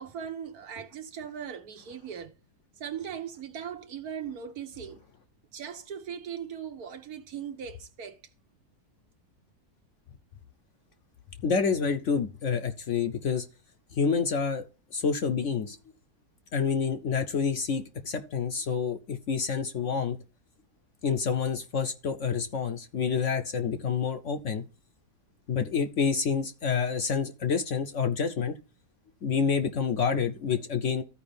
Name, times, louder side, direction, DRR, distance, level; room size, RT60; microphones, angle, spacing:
voice 1, 0.0-2.3 2.8-5.0 5.5-8.2, right 8 dB, 65° right, 1.5 m, -39 dB
voice 2, 11.4-13.5 13.9-14.7 14.9-15.8 16.5-20.2 21.0-24.6 25.5-28.6 29.2-31.0, left 6 dB, 60° left, 0.9 m, -28 dB
14.0 x 4.8 x 3.4 m
omnidirectional pair, 1.7 m